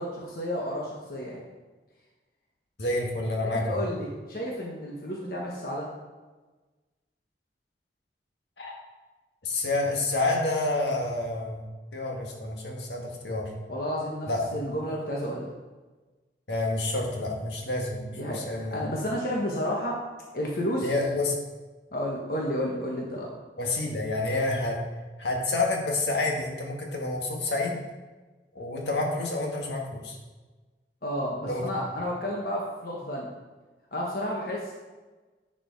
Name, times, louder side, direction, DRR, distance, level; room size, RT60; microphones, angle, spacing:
voice 1, 0.0-1.4 3.4-5.9 13.7-15.5 18.1-20.0 20.3-20.9 21.9-23.3 31.0-33.3 33.9-34.7, equal, 55° left, -3 dB, 1.3 m, -31 dB
voice 2, 2.8-3.8 8.6-8.7 9.4-11.6 11.9-13.5 14.3-14.4 16.5-18.8 20.8-21.3 23.6-24.8 25.2-27.8 28.5-30.2 31.5-31.7, left 2 dB, 75° left, 0 dB, 1.7 m, -28 dB
10.5 x 5.1 x 4.7 m, 1.3 s
head